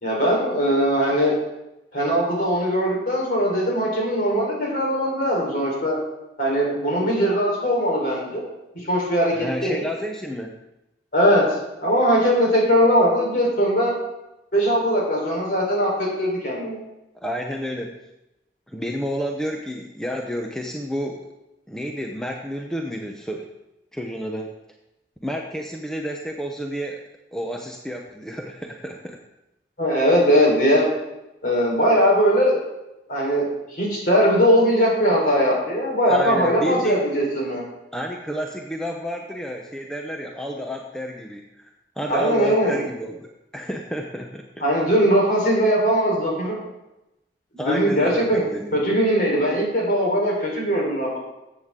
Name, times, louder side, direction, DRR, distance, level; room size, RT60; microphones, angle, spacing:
voice 1, 0.0-1.3 1.9-6.0 6.4-8.4 8.7-9.8 11.1-11.4 11.8-13.9 14.5-16.8 29.8-30.9 31.4-32.6 33.1-33.4 33.7-37.6 42.1-42.8 44.6-46.5 47.5-48.4 48.7-51.2, equal, 55° left, -2 dB, 4.0 m, -20 dB
voice 2, 9.3-10.6 17.2-18.0 18.7-21.3 21.7-23.5 23.9-24.6 25.2-27.0 27.3-29.2 36.1-37.0 37.9-43.3 43.5-44.7 47.6-48.8, equal, 5° left, 1 dB, 0.7 m, -30 dB
14.0 x 8.1 x 3.7 m, 0.93 s
head